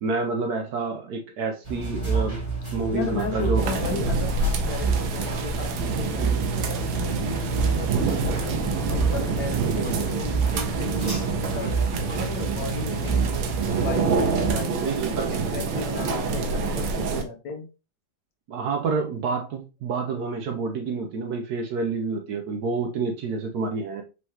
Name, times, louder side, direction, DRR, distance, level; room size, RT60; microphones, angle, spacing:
voice 1, 0.0-2.4 2.7-3.6 14.8-15.3 18.5-24.0, right 4 dB, 70° right, 4 dB, 1.0 m, -28 dB
sound 1, 1.6-14.5, right 4 dB, 15° right, 1.7 m, -29 dB
voice 2, 2.9-13.3 13.8-17.7, left 4 dB, 65° left, 3 dB, 1.3 m, -35 dB
sound 2, 3.6-17.2, right 4 dB, 90° right, 1.5 m, -27 dB
sound 3, 7.0-7.1 7.4-7.7 8.0-8.8 9.1-9.4 9.8-10.5 10.8-11.2 11.5-12.2 12.5-12.9 13.2-13.8, left 3 dB, 5° left, 0.5 m, -46 dB
4.6 x 3.1 x 2.8 m, 0.30 s
omnidirectional pair, 2.1 m